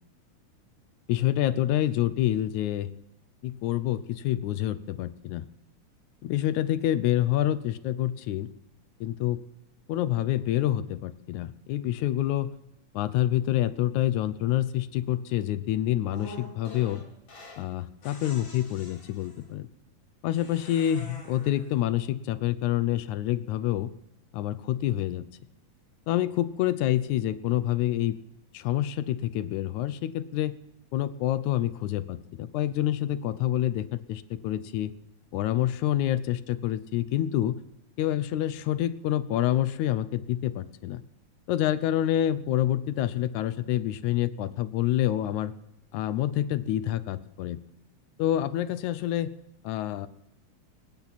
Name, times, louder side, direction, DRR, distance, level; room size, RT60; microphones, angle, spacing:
voice 1, 1.1-2.9 3.4-5.5 6.2-8.5 9.0-9.4 9.9-12.6 12.9-17.0 17.6-19.7 20.2-23.9 24.3-25.3 26.1-28.2 28.5-30.5 30.9-34.9 35.3-37.6 38.0-41.0 41.5-45.5 45.9-47.6 48.2-49.3 49.6-50.1, left 12 dB, 85° left, 13 dB, 2.1 m, -27 dB
sound 1, 16.1-17.7 18.0-19.5 20.3-21.7, left 2 dB, 65° left, 4.9 m, -46 dB
26.5 x 8.9 x 4.2 m, 0.90 s
omnidirectional pair, 3.3 m